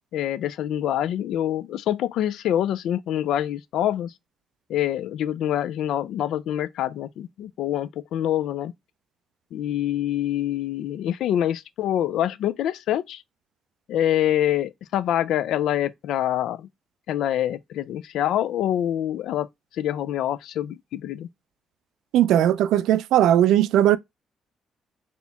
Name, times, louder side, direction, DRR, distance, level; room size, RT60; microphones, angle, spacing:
voice 1, 0.1-4.1 4.7-8.7 9.5-13.2 13.9-16.7 17.1-19.5 19.7-21.3, left 11 dB, 80° left, 0.3 m, -25 dB
voice 2, 22.1-24.0, right 11 dB, 85° right, 0.3 m, -18 dB
4.1 x 2.9 x 3.4 m
cardioid pair, 90°, 0 cm